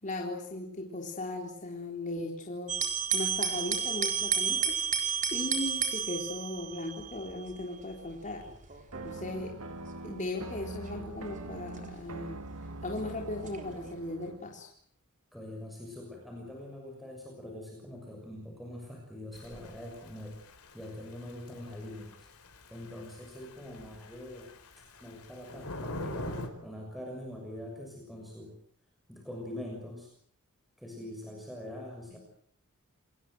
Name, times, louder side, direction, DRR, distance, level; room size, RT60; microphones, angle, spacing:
voice 1, 0.0-2.8 3.1-4.8 5.3-8.5 9.0-9.5 10.0-12.5 12.8-14.7 32.1-32.2, left 1 dB, 35° left, 1 dB, 3.8 m, -37 dB
sound 1, 2.7-12.8 13.4-13.9, right 7 dB, 35° right, 3.9 m, -33 dB
sound 2, 8.9-14.5, right 2 dB, 75° right, 1.8 m, -43 dB
voice 2, 15.3-20.4 20.7-22.3 22.7-24.5 25.0-28.5 29.1-30.1 30.8-32.2, left 1 dB, ahead, 0 dB, 6.5 m, -43 dB
Thunder / Rain, 19.3-26.5, left 1 dB, 85° left, 5.0 m, -44 dB
29.0 x 21.0 x 7.9 m, 0.64 s
head